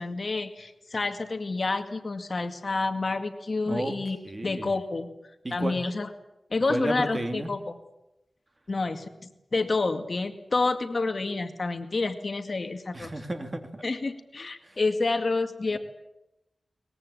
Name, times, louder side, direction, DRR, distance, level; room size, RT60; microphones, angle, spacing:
voice 1, 0.0-4.2 4.4-5.1 5.5-6.1 6.5-7.6 8.7-13.1 13.8-15.8, left 3 dB, 45° left, 7 dB, 2.1 m, -29 dB
voice 2, 3.6-4.0 4.2-4.7 5.4-5.8 6.7-7.5 12.9-13.8 14.6-14.8 15.7-15.8, right 1 dB, 25° right, 6 dB, 2.9 m, -32 dB
22.5 x 21.0 x 8.8 m, 0.90 s
wide cardioid pair, 115°, 0 cm